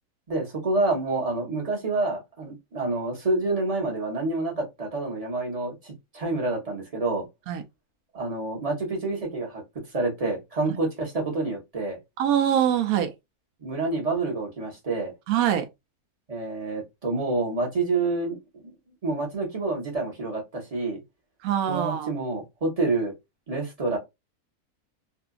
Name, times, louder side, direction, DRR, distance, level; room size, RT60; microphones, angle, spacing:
voice 1, 0.3-7.3 8.1-9.6 9.9-12.0 13.6-15.1 16.3-18.4 19.0-21.0 21.7-23.1 23.5-24.0, right 3 dB, 30° right, 0.9 m, -28 dB
voice 2, 12.2-13.1 15.3-15.7 21.4-22.1, right 10 dB, 75° right, 1.0 m, -23 dB
2.7 x 2.5 x 2.3 m
omnidirectional pair, 1.6 m